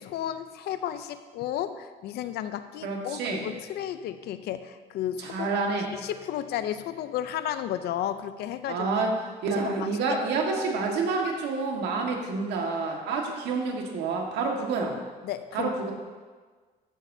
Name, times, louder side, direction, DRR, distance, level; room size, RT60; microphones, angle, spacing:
voice 1, 0.0-5.5 5.9-8.9 9.5-9.9 15.2-15.7, left 11 dB, 75° left, 11 dB, 0.6 m, -33 dB
voice 2, 2.8-3.4 5.2-5.9 8.7-9.1 9.4-14.9 15.5-15.9, right 4 dB, 80° right, 1 dB, 1.7 m, -28 dB
14.0 x 8.5 x 2.8 m, 1.4 s
cardioid pair, 110°, 17 cm